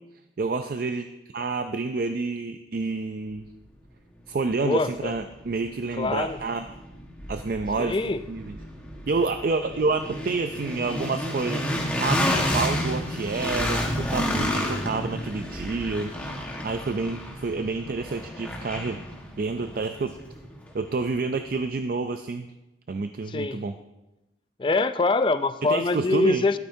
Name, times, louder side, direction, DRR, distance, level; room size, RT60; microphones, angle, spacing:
voice 1, 0.4-1.1 1.3-3.5 4.3-6.7 7.3-8.0 8.3-8.6 9.1-11.6 12.0-16.3 16.6-19.0 19.4-20.1 20.7-22.5 22.9-23.7 25.6-26.4, right 3 dB, 50° right, 8 dB, 0.4 m, -28 dB
sound 1, 4.5-4.6 5.1-21.1, equal, 10° left, 1.4 m, -31 dB
voice 2, 4.6-5.1 6.0-6.4 7.8-8.2 23.3-23.6 24.6-26.6, left 3 dB, 25° left, 12 dB, 0.4 m, -24 dB
13.0 x 12.5 x 2.7 m, 0.98 s
head